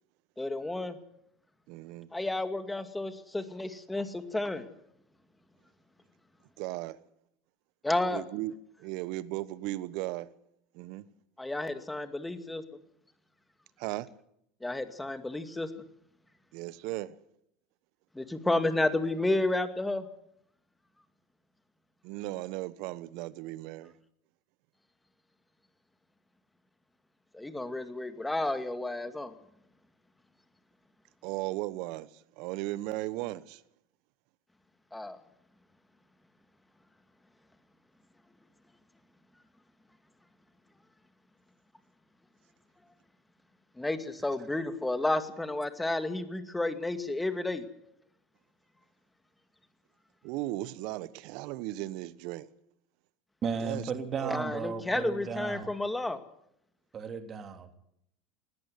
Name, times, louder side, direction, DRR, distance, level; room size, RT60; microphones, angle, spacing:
voice 1, 0.4-1.0 2.1-4.7 7.8-8.2 11.4-12.6 14.6-15.7 18.1-20.1 27.3-29.3 34.9-35.2 43.8-47.7 54.3-56.2, left 2 dB, 10° left, 2.2 m, -31 dB
voice 2, 1.7-2.1 6.6-7.0 8.1-8.5 8.8-10.3 10.7-11.1 13.8-14.1 16.5-17.2 22.0-23.9 31.2-32.1 32.4-33.6 50.2-52.5 53.6-53.8 54.1-54.3, right 17 dB, 65° right, 1.1 m, -36 dB
voice 3, 53.4-55.7 56.9-57.7, right 5 dB, 35° right, 3.1 m, -35 dB
19.5 x 14.5 x 9.5 m
hypercardioid pair, 85°, 0 cm